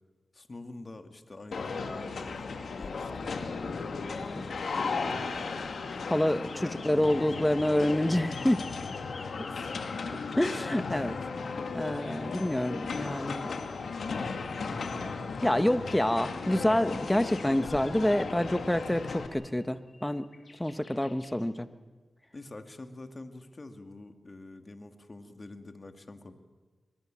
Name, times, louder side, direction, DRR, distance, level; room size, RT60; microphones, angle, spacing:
voice 1, 0.3-3.6 4.1-5.6 6.0-7.7 9.2-9.7 22.3-26.3, left 2 dB, 40° left, 7 dB, 2.3 m, -46 dB
sound 1, 1.5-19.3, left 4 dB, 75° left, 2.2 m, -36 dB
sound 2, 5.9-11.0 12.3-12.4 12.9-13.0 13.2-13.3 13.5-13.6 13.9-14.0 15.8-15.9 16.5-21.5, left 3 dB, 55° left, 2.3 m, -52 dB
voice 2, 6.1-8.6 10.4-11.2 11.7-13.5 14.7-14.9 15.4-20.3 20.6-21.7, left 1 dB, 10° left, 11 dB, 1.2 m, -27 dB
23.5 x 21.5 x 7.6 m, 1.4 s
cardioid pair, 60°, 0 cm